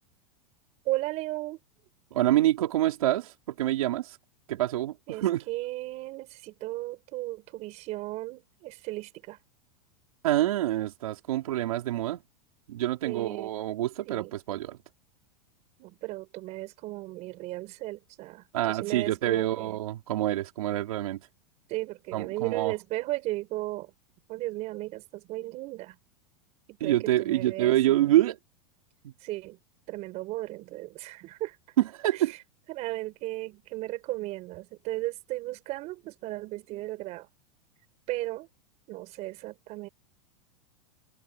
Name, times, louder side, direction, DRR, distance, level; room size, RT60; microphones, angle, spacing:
voice 1, 0.8-1.6 5.1-9.4 13.0-13.5 14.0-14.3 15.8-19.7 21.7-23.9 24.3-26.0 26.7-28.1 29.2-29.6 29.9-31.6 32.1-32.4 32.7-37.3 38.1-38.5 38.9-39.9, right 18 dB, 40° right, 5.1 m, -35 dB
voice 2, 2.1-4.2 4.5-5.4 10.2-12.2 12.7-14.8 18.5-21.2 22.1-22.7 26.8-28.4 29.0-29.1 31.8-32.3, right 14 dB, 85° right, 4.3 m, -26 dB
supercardioid pair, 150°, 18 cm